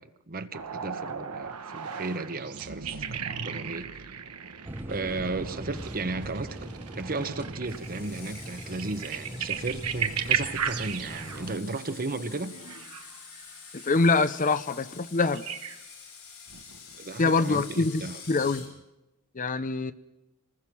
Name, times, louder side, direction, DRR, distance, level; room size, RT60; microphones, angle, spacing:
voice 1, 0.0-4.1 4.9-6.7 6.9-12.5 17.0-18.2, right 3 dB, 40° right, 1.0 m, -35 dB
sound 1, 0.5-13.9 14.2-14.6 15.3-15.9 16.5-17.2 18.5-18.6, right 7 dB, 90° right, 1.3 m, -36 dB
sound 2, 4.7-11.6, equal, 10° right, 0.8 m, -41 dB
Screech, 7.6-18.7, left 6 dB, 90° left, 5.9 m, -47 dB
voice 2, 13.7-15.4 17.2-18.7 19.3-19.9, left 3 dB, 35° left, 0.7 m, -25 dB
26.5 x 20.0 x 6.1 m
head